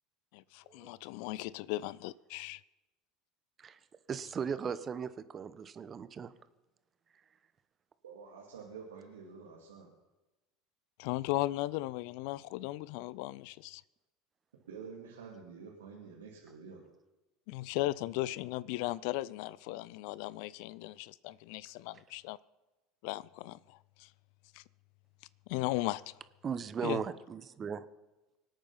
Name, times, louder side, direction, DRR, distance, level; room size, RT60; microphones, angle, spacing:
voice 1, 0.3-2.6 11.0-13.8 17.5-22.4 23.0-24.1 24.5-24.6 25.5-26.1 26.8-27.0, left 18 dB, 65° left, 21 dB, 0.4 m, -37 dB
voice 2, 4.1-6.3 26.4-27.8, right 7 dB, 35° right, 13 dB, 1.0 m, -37 dB
voice 3, 8.0-9.9 14.7-16.9, right 5 dB, 85° right, -3 dB, 2.5 m, -48 dB
25.0 x 8.8 x 5.8 m, 1.1 s
hypercardioid pair, 75°, 0 cm